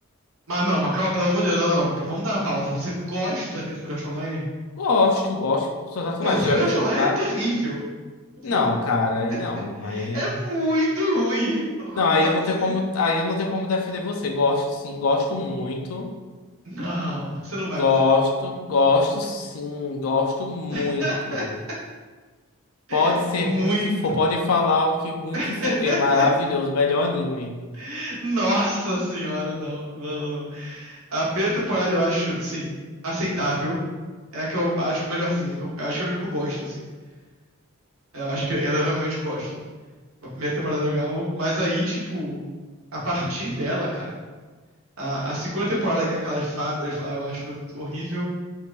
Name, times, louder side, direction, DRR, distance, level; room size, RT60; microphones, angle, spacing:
voice 1, 0.5-4.4 6.2-7.8 8.5-8.6 9.8-12.7 16.6-17.8 20.7-21.4 22.9-23.9 25.3-26.2 27.7-32.7 33.0-33.8 34.3-36.9 38.1-39.6 40.4-42.4 42.9-44.1 45.0-48.2, equal, 85° right, -6 dB, 1.1 m, -26 dB
voice 2, 4.8-6.6 7.0-7.2 8.4-10.4 12.0-16.1 17.8-21.5 22.9-25.4 25.7-27.6, left 3 dB, 90° left, 2 dB, 0.5 m, -23 dB
3.6 x 2.8 x 2.5 m, 1.4 s
head